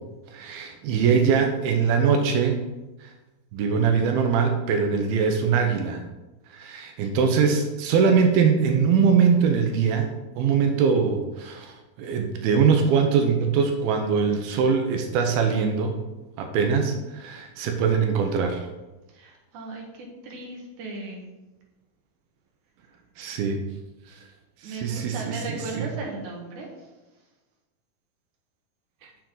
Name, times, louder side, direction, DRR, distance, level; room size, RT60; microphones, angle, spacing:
voice 1, 0.3-2.6 3.0-3.1 3.5-6.0 6.5-16.0 16.4-18.7 23.2-23.6 24.2-24.3 24.6-25.4 25.7-25.9, right 6 dB, 85° right, 4 dB, 2.7 m, -22 dB
voice 2, 19.1-21.3 24.6-26.9, right 2 dB, 65° right, 0 dB, 2.5 m, -37 dB
7.5 x 7.1 x 3.9 m, 1.1 s
omnidirectional pair, 4.2 m